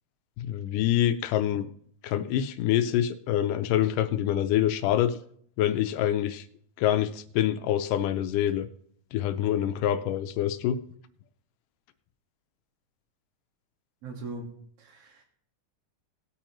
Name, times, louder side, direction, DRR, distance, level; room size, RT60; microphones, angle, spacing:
voice 1, 0.4-1.7 2.0-5.1 5.6-6.4 6.8-8.7 9.1-10.8, left 11 dB, 85° left, 10 dB, 2.2 m, -26 dB
voice 2, 14.0-14.5 14.8-15.2, right 3 dB, 50° right, 2 dB, 2.6 m, -39 dB
19.0 x 8.7 x 3.1 m, 0.64 s
omnidirectional pair, 3.7 m